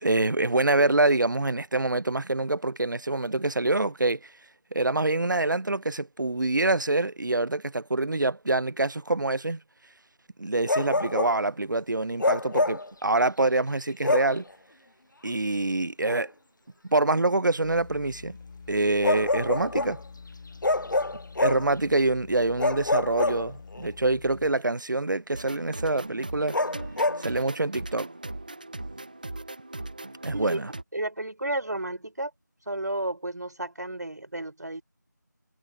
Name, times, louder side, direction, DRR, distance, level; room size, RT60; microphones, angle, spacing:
voice 1, 0.0-4.2 4.7-9.6 10.4-14.4 15.2-16.3 16.9-18.4 18.7-20.0 21.4-26.6 27.2-28.1 30.2-30.7, right 2 dB, 80° right, 0.6 m, -25 dB
Bark, 10.7-11.4 12.2-12.9 14.0-14.4 16.1-16.2 19.0-20.0 20.6-21.7 22.6-23.9 26.5-27.3, left 2 dB, 75° left, 0.7 m, -26 dB
sound 1, 17.6-24.5, left 4 dB, 20° left, 3.2 m, -46 dB
sound 2, 25.3-30.8, right 2 dB, 25° right, 0.7 m, -39 dB
voice 2, 30.3-30.6 30.9-32.3 32.7-34.8, right 1 dB, 60° right, 4.1 m, -32 dB
figure-of-eight pair, 170°, 10 cm